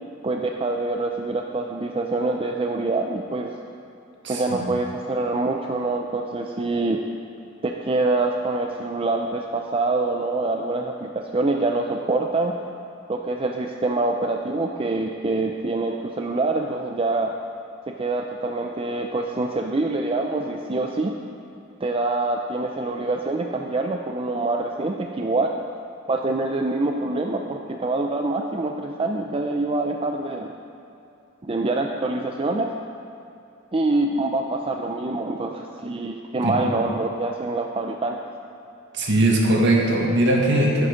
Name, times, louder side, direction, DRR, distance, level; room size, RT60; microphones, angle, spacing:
voice 1, 0.2-3.5 4.3-7.0 7.6-12.5 13.1-17.3 17.9-21.1 21.8-25.5 26.1-30.5 31.4-32.8 33.7-38.2, right 2 dB, 25° right, 2 dB, 0.5 m, -25 dB
voice 2, 4.2-4.6 36.4-36.6 38.9-40.9, right 1 dB, 60° right, -1 dB, 1.8 m, -20 dB
10.5 x 10.5 x 5.1 m, 2.7 s
head